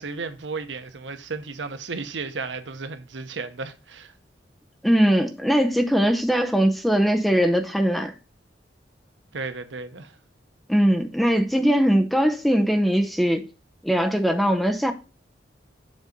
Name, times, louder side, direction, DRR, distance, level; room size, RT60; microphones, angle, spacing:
voice 1, 0.0-4.1 9.3-10.2, right 4 dB, 80° right, 0.9 m, -34 dB
voice 2, 4.8-8.1 10.7-13.5 13.8-14.9, equal, ahead, 0.6 m, -20 dB
7.4 x 4.1 x 5.2 m
head